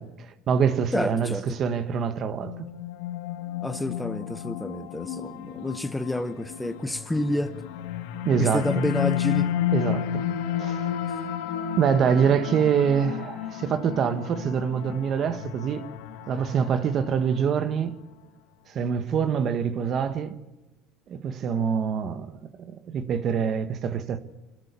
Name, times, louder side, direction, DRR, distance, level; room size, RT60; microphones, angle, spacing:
voice 1, 0.0-2.7 8.2-8.9 9.7-10.3 10.6-10.9 11.8-15.8 16.3-18.0 18.7-20.4 21.1-22.4 22.7-24.2, right 7 dB, 45° right, 1.6 m, -25 dB
voice 2, 0.9-1.6 3.6-7.5 8.4-9.5, left 1 dB, 5° left, 0.8 m, -29 dB
sound 1, 2.4-17.7, left 11 dB, 85° left, 1.9 m, -32 dB
26.5 x 13.0 x 8.4 m
cardioid pair, 130°, 0 cm